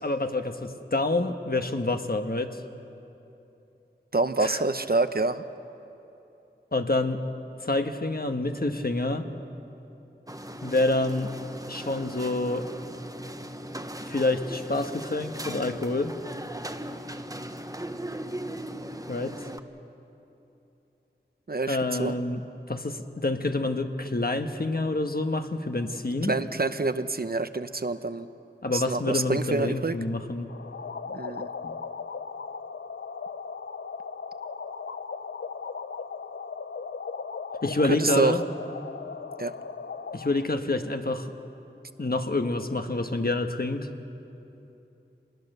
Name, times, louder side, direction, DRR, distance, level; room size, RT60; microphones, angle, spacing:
voice 1, 0.0-2.6 4.4-4.6 6.7-7.2 7.6-9.3 10.6-11.3 11.7-12.7 14.1-16.1 19.1-19.3 21.7-22.4 22.7-26.3 28.6-30.5 31.6-31.7 37.6-38.4 40.1-41.3 42.0-43.9, left 2 dB, 55° left, 6 dB, 1.3 m, -27 dB
voice 2, 4.1-5.4 21.5-22.1 26.3-28.3 28.7-30.0 31.1-31.5 37.8-38.4 39.4-39.5, right 3 dB, 55° right, 10 dB, 0.8 m, -27 dB
sound 1, 10.3-19.6, right 1 dB, 20° right, 1.1 m, -38 dB
sound 2, 30.5-40.5, left 5 dB, 75° left, 0.5 m, -37 dB
25.0 x 20.0 x 6.8 m, 2.9 s
wide cardioid pair, 45°, 19 cm